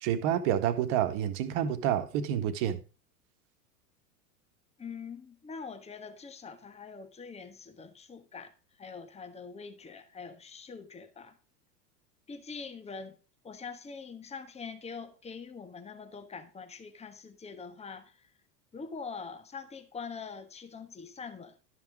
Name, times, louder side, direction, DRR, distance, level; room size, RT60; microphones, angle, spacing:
voice 1, 0.0-2.8, right 10 dB, 50° right, 1.5 m, -28 dB
voice 2, 4.8-8.5 8.8-11.4 12.3-13.2 13.4-18.3 18.7-21.5, left 5 dB, 15° left, 1.3 m, -44 dB
12.0 x 5.9 x 4.9 m
hypercardioid pair, 95°, 47 cm